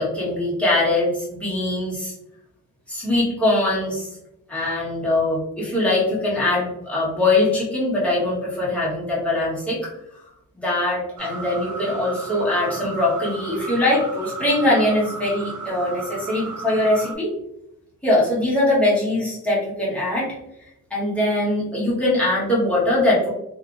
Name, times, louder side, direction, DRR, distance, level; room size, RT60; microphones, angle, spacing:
voice 1, 0.0-2.1 2.9-4.1 4.5-9.8 10.1-10.2 10.5-17.3 18.0-20.3 20.9-23.3, left 1 dB, 5° left, -8 dB, 1.2 m, -22 dB
sound 1, 11.2-17.1, right 3 dB, 80° right, 0.5 m, -34 dB
2.8 x 2.5 x 2.4 m, 0.86 s
wide cardioid pair, 140°, 30 cm